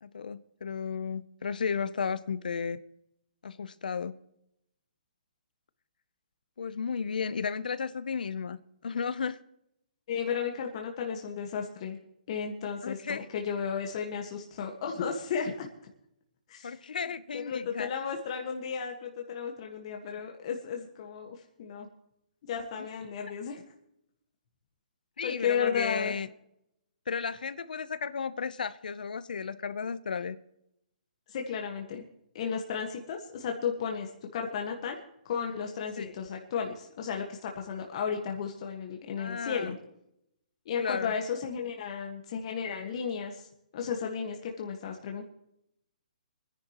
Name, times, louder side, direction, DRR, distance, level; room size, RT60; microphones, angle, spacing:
voice 1, 0.0-2.8 3.4-4.1 6.6-9.4 12.8-13.3 16.6-17.9 22.8-22.9 25.2-26.3 27.1-30.4 36.0-36.1 39.2-39.7 40.8-41.1, left 6 dB, 80° left, 0.8 m, -34 dB
voice 2, 10.1-12.0 12.3-15.7 16.5-16.8 17.3-21.9 22.5-23.6 25.2-26.1 31.3-32.0 32.3-35.0 35.3-39.8 40.6-43.5 43.7-45.3, left 6 dB, 45° left, 1.6 m, -34 dB
26.0 x 10.5 x 3.0 m
hypercardioid pair, 155°, 5 cm